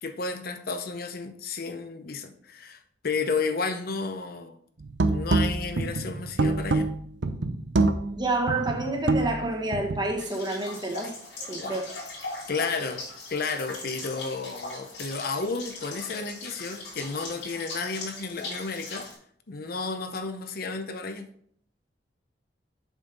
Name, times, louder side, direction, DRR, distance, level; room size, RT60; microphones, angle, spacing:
voice 1, 0.0-4.6 5.0-6.9 11.6-11.8 12.5-13.0 13.3-19.1 19.5-21.3, left 4 dB, 55° left, 7 dB, 0.7 m, -32 dB
sound 1, 4.8-10.1, right 2 dB, 75° right, 0.7 m, -26 dB
voice 2, 8.1-11.1 11.5-11.9, right 2 dB, 25° right, 2 dB, 1.3 m, -29 dB
sound 2, 10.2-19.1, left 2 dB, 80° left, 3.2 m, -39 dB
7.2 x 5.5 x 3.9 m, 0.64 s
head